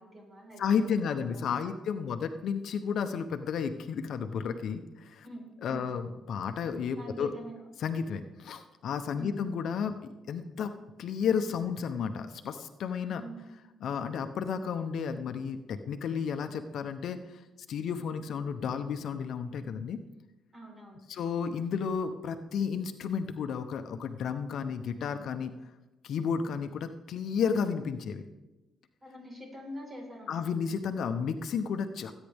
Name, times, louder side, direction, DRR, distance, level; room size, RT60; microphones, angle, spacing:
voice 1, 0.0-1.3 1.6-2.2 5.2-5.9 7.0-7.7 9.1-9.4 13.2-13.4 20.5-21.1 29.0-30.5, equal, 25° right, 0 dB, 4.6 m, -45 dB
voice 2, 0.6-5.2 5.6-7.3 7.8-9.9 10.3-10.7 11.0-13.2 13.8-17.4 17.7-20.0 21.1-25.5 26.0-28.2 30.3-32.1, left 6 dB, 70° left, 8 dB, 0.8 m, -32 dB
19.0 x 9.2 x 3.6 m, 1.1 s
cardioid pair, 90°, 0 cm